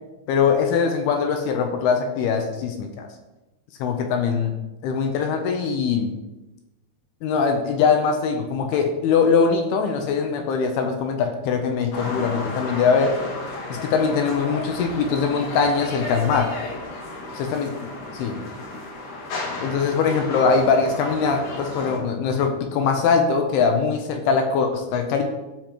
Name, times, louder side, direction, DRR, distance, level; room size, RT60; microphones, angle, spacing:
voice 1, 0.3-3.1 3.8-4.5 4.8-6.1 7.2-13.2 13.7-16.5 17.5-17.7 18.1-18.4 19.6-25.2, left 5 dB, 80° left, 4 dB, 2.4 m, -22 dB
sound 1, 11.9-22.0, left 2 dB, 60° left, 2.3 m, -33 dB
15.0 x 5.2 x 3.0 m, 1.0 s
omnidirectional pair, 5.2 m